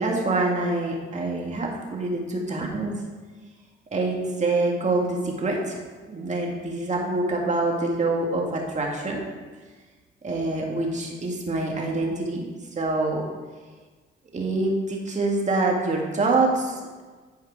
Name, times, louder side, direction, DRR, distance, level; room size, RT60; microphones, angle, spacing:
voice 1, 0.0-1.7 2.0-2.2 2.5-3.0 3.9-5.7 6.1-9.2 10.2-12.5 12.8-13.3 14.3-17.0, right 2 dB, 35° right, 0 dB, 1.9 m, -25 dB
11.5 x 4.7 x 4.7 m, 1.4 s
cardioid pair, 90°, 20 cm